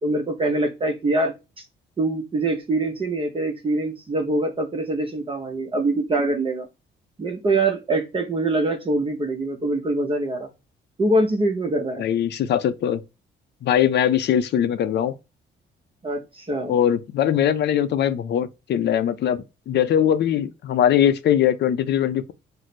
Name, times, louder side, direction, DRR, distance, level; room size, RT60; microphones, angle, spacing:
voice 1, 0.0-1.3 2.0-6.7 7.2-10.5 11.0-12.1 16.0-16.8, right 2 dB, 25° right, 0.6 m, -24 dB
voice 2, 12.0-13.0 13.6-15.2 16.7-22.3, left 9 dB, 60° left, 0.4 m, -21 dB
3.1 x 2.0 x 4.0 m
cardioid pair, 90°, 20 cm